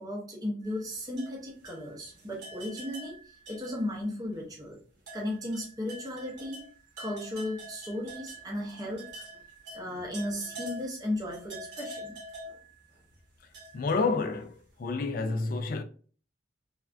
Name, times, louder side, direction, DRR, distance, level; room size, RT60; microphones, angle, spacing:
voice 1, 0.0-4.8 5.1-6.7 7.0-9.2 9.7-12.2 12.5-12.6, left 1 dB, 20° right, 0.6 m, -35 dB
sound 1, 0.6-4.1 4.4-4.5 5.0-14.6, right 1 dB, 60° right, 1.0 m, -46 dB
voice 2, 13.7-14.5 14.8-15.8, left 3 dB, 45° left, 0.3 m, -29 dB
3.2 x 2.3 x 2.4 m
head